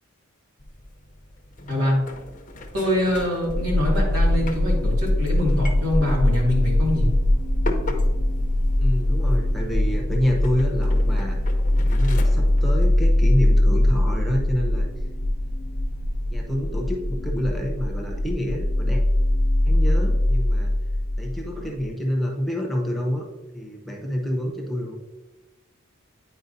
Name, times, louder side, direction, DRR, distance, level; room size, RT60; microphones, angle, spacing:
sound 1, 0.6-14.2, left 1 dB, 35° left, 0.7 m, -39 dB
voice 1, 2.7-7.1, left 1 dB, 90° right, -3 dB, 2.3 m, -24 dB
sound 2, 3.5-21.9, left 1 dB, 75° left, 0.7 m, -21 dB
voice 2, 8.8-11.4 11.9-14.9 16.3-19.0 19.6-20.7 21.2-23.2 23.5-25.0, equal, ahead, 0 dB, 0.8 m, -27 dB
9.4 x 4.6 x 2.7 m, 1.1 s
head